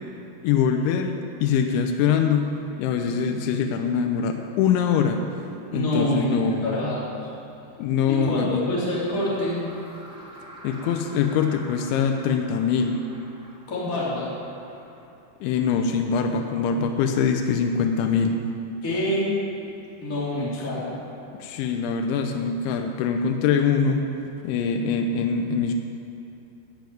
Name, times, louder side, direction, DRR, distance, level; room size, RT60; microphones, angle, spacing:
voice 1, 0.4-2.5 2.8-5.2 5.7-6.9 7.8-8.7 10.6-13.1 15.4-18.4 21.4-25.7, left 6 dB, 85° left, 4 dB, 3.2 m, -23 dB
voice 2, 5.7-6.3 6.6-7.3 8.1-8.4 8.7-9.6 13.7-14.3 18.8-19.3 20.0-21.0, left 1 dB, 20° left, -7 dB, 3.1 m, -26 dB
sound 1, 8.7-15.1, equal, 5° right, 0.8 m, -47 dB
14.5 x 7.0 x 9.3 m, 2.9 s
omnidirectional pair, 5.2 m